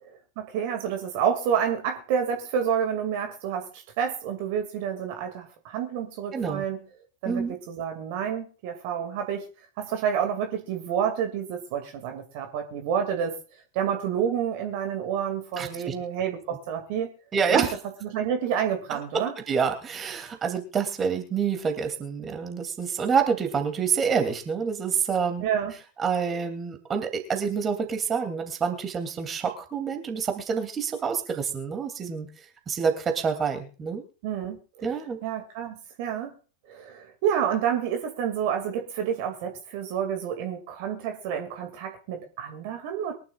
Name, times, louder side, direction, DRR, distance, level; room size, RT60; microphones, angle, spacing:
voice 1, 0.0-6.8 7.2-9.4 9.8-13.3 13.7-17.2 17.5-17.7 18.0-19.3 25.4-25.7 34.2-34.6 35.2-36.3 36.7-43.1, right 8 dB, 45° right, 5 dB, 2.4 m, -29 dB
voice 2, 6.3-6.6 7.3-7.5 15.6-15.9 17.3-17.7 19.1-25.4 26.0-32.3 32.7-34.0 34.8-35.2, right 6 dB, 20° right, 5 dB, 2.8 m, -27 dB
23.5 x 11.5 x 2.5 m, 0.37 s
figure-of-eight pair, 90°, 0 cm